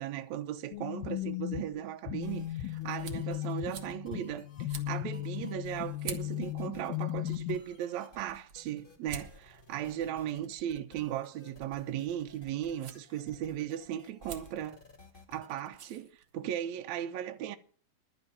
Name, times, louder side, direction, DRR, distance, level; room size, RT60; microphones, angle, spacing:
voice 1, 0.0-14.8 15.3-17.6, right 11 dB, 75° right, 1.7 m, -37 dB
sound 1, 0.7-7.6, left 14 dB, 75° left, 2.4 m, -36 dB
sound 2, 1.9-16.7, right 6 dB, 55° right, 1.4 m, -51 dB
sound 3, 2.2-15.7, left 1 dB, 25° left, 1.2 m, -56 dB
12.0 x 6.4 x 9.0 m
omnidirectional pair, 4.5 m